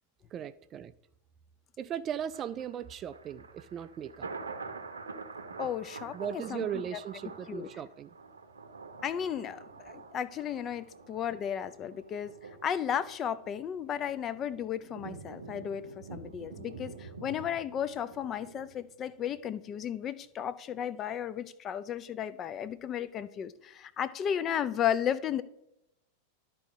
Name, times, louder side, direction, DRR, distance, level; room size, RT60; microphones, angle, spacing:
voice 1, 0.3-0.9 1.8-4.3 6.1-8.1, right 9 dB, 30° right, 0.4 m, -37 dB
Thunder, 2.3-19.4 19.8-19.9, right 4 dB, 75° right, 0.7 m, -47 dB
voice 2, 5.6-6.7 7.5-7.7 9.0-12.3 12.6-15.9 16.1-25.4, left 9 dB, 30° left, 0.5 m, -34 dB
13.0 x 4.5 x 3.6 m
figure-of-eight pair, 90°, 0 cm